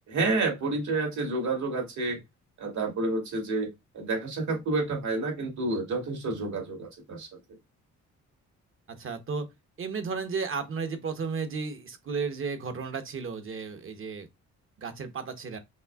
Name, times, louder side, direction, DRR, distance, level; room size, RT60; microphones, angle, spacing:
voice 1, 0.1-2.2 2.6-7.3, right 3 dB, 70° right, 2.5 m, -29 dB
voice 2, 8.9-9.5 9.8-14.3 14.8-15.6, right 5 dB, 45° right, 1.1 m, -33 dB
5.4 x 3.0 x 2.4 m
cardioid pair, 90°, 30 cm